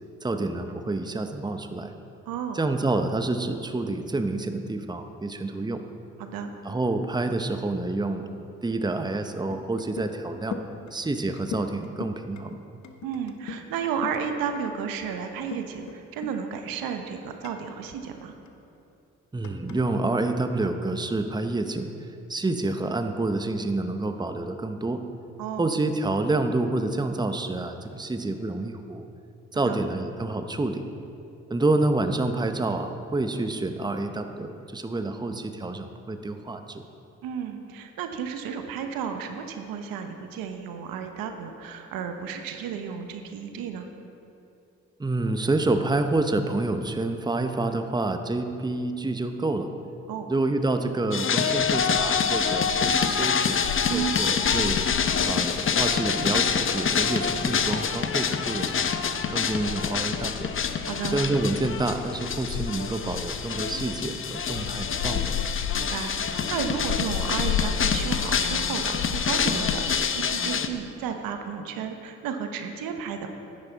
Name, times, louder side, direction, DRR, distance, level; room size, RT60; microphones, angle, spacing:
voice 1, 0.2-1.9 2.5-5.8 6.6-8.3 8.6-10.6 10.9-12.6 19.3-21.9 22.3-25.0 25.6-29.1 29.5-30.8 31.5-36.8 45.0-49.7 50.3-54.8 55.2-60.5 61.1-65.4, right 2 dB, 10° right, 7 dB, 0.8 m, -28 dB
voice 2, 2.3-2.6 6.2-6.5 13.0-18.3 25.4-25.7 29.5-29.8 37.2-43.9 50.1-50.3 53.9-54.2 60.9-61.2 65.7-73.3, right 7 dB, 75° right, 6 dB, 1.0 m, -33 dB
sound 1, 9.2-9.3 9.5-10.1 10.4-14.5 15.5-16.0 16.2-16.4 16.9-17.0 17.4-18.5 19.4-20.2, left 5 dB, 55° left, 1.1 m, -39 dB
sound 2, 51.1-70.7, left 6 dB, 35° left, 0.8 m, -26 dB
sound 3, 51.5-70.0, left 9 dB, 75° left, 0.5 m, -35 dB
10.0 x 9.9 x 4.1 m, 2.7 s
hypercardioid pair, 45°, 35 cm